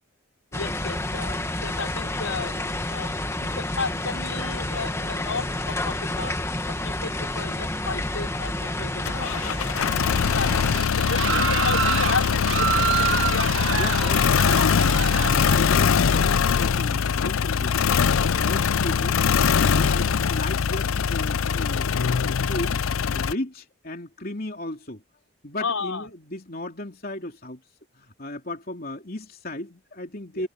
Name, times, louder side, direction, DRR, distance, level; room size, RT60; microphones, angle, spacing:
voice 1, 0.5-6.4 6.7-9.4 10.2-13.6 13.8-14.1 15.5-15.7 18.2-18.5 25.6-26.1 30.3-30.5, left 4 dB, 90° left, 4.7 m, -33 dB
sound 1, 0.5-10.8, left 1 dB, 15° left, 1.4 m, -29 dB
sound 2, 9.0-9.8 10.1-10.3 10.7-15.6, right 7 dB, 65° right, 1.0 m, -27 dB
sound 3, 9.1-23.3, left 6 dB, 75° left, 0.5 m, -22 dB
voice 2, 13.7-14.8 15.1-17.9 18.2-25.0 25.4-27.6 28.0-30.5, left 1 dB, 45° left, 3.4 m, -35 dB
head